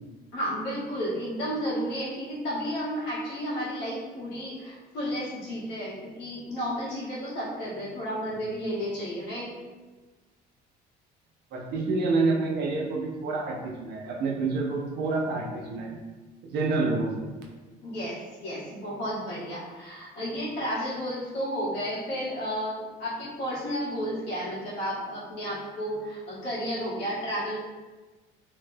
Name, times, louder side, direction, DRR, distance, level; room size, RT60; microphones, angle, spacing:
voice 1, 0.3-9.5 17.8-27.6, equal, 75° left, -8 dB, 1.4 m, -32 dB
voice 2, 11.5-16.0 16.4-17.2, right 3 dB, 65° right, 0 dB, 0.7 m, -28 dB
3.1 x 2.2 x 3.3 m, 1.3 s
cardioid pair, 110°, 18 cm